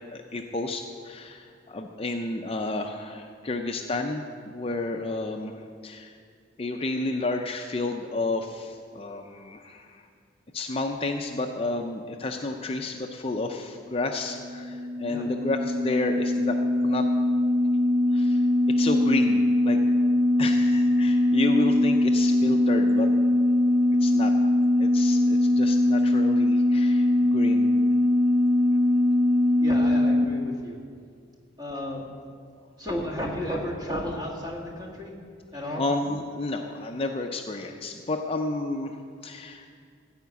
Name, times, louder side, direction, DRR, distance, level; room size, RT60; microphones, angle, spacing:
voice 1, 0.1-5.5 5.8-6.1 6.6-10.0 10.5-16.6 16.8-17.1 18.1-18.5 18.8-19.8 20.4-23.1 24.0-24.3 24.8-27.8 35.8-39.7, left 2 dB, 30° left, 4 dB, 0.5 m, -31 dB
sound 1, 14.1-30.2, left 1 dB, 75° right, 0.5 m, -22 dB
voice 2, 29.6-30.8 31.6-32.1 32.8-35.1 35.5-35.8, left 1 dB, 20° right, -2 dB, 1.8 m, -33 dB
14.0 x 5.1 x 8.3 m, 2.2 s
head